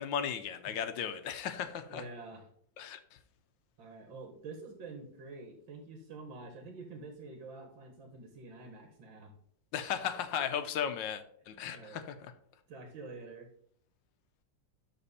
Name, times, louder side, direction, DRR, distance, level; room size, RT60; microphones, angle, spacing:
voice 1, 0.0-2.0 2.8-3.0 9.7-12.3, left 8 dB, 75° left, 1.4 m, -36 dB
voice 2, 1.5-2.5 3.8-9.3 10.3-10.7 11.4-12.0 12.7-13.5, right 3 dB, 80° right, 2.0 m, -48 dB
12.0 x 4.2 x 4.1 m
omnidirectional pair, 2.1 m